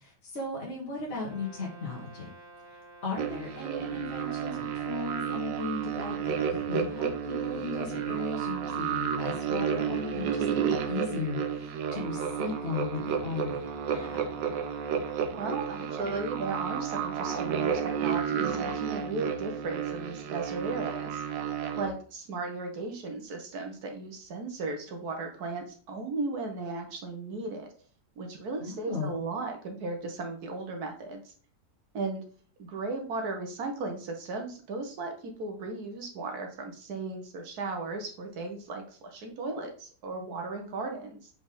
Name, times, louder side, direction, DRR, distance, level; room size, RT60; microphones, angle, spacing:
voice 1, 0.0-2.3 3.0-14.2 28.6-29.2, left 4 dB, 40° left, -4 dB, 1.7 m, -36 dB
Brass instrument, 1.1-5.1, right 2 dB, 35° right, 2.3 m, -51 dB
sound 1, 3.2-21.9, right 7 dB, 85° right, 1.3 m, -31 dB
voice 2, 15.3-21.2 21.8-27.7 28.2-31.3 31.9-32.2 32.6-41.3, right 3 dB, 70° right, 3 dB, 1.7 m, -36 dB
5.2 x 4.8 x 3.7 m, 0.43 s
omnidirectional pair, 1.8 m